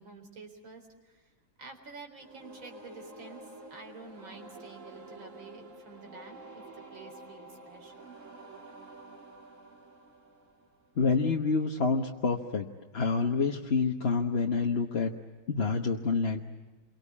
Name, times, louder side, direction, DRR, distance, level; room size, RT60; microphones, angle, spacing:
voice 1, 0.0-1.3 1.6-3.4 3.7-6.6 6.9-8.1, right 4 dB, 80° right, 4 dB, 4.8 m, -49 dB
sound 1, 2.2-11.0, right 2 dB, 40° right, 2.6 m, -49 dB
voice 2, 11.0-12.7 12.9-15.1 15.5-16.4, left 4 dB, 35° left, 1 dB, 1.3 m, -27 dB
28.5 x 24.0 x 8.5 m, 1.2 s
omnidirectional pair, 2.1 m